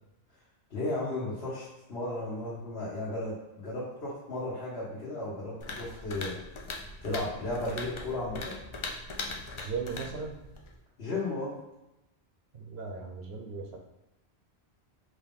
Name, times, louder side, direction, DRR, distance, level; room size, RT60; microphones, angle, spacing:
voice 1, 0.7-6.4 7.0-8.6 11.0-11.6, left 2 dB, 70° left, -8 dB, 1.2 m, -34 dB
sound 1, 5.6-10.8, left 3 dB, 55° left, 0.3 m, -40 dB
voice 2, 9.6-10.4 12.5-13.8, right 5 dB, 70° right, 2 dB, 0.8 m, -37 dB
4.1 x 2.5 x 3.5 m, 0.95 s
omnidirectional pair, 1.1 m